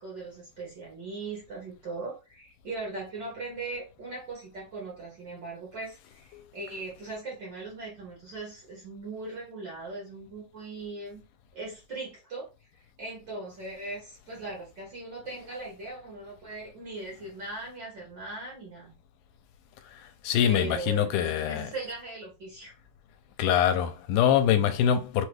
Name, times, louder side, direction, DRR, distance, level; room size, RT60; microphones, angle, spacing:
voice 1, 0.0-11.2 11.5-12.5 13.0-18.9 20.5-22.7, right 3 dB, 45° right, 1.7 m, -39 dB
voice 2, 20.2-21.7 23.4-25.3, left 9 dB, 90° left, 2.1 m, -24 dB
5.8 x 3.2 x 2.3 m
omnidirectional pair, 3.6 m